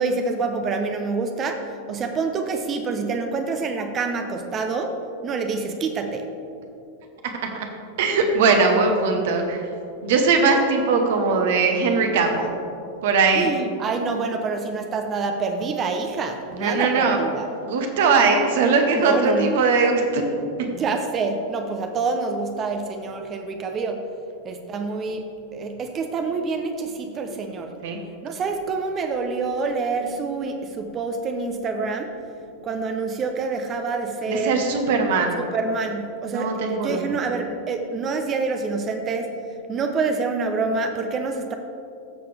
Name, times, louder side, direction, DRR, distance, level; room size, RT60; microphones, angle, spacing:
voice 1, 0.0-6.2 13.3-17.5 18.9-19.5 20.7-24.1 24.4-27.7 28.2-32.1 32.6-34.6 35.5-39.3 39.7-41.6, right 4 dB, 25° right, 5 dB, 0.7 m, -27 dB
voice 2, 8.0-9.6 10.0-12.5 13.0-13.5 16.6-17.2 17.6-20.2 20.6-20.7 27.8-28.0 34.3-35.4 36.3-37.1, right 4 dB, 55° right, 4 dB, 1.2 m, -20 dB
14.0 x 6.9 x 3.4 m, 2.6 s
figure-of-eight pair, 90°, 0 cm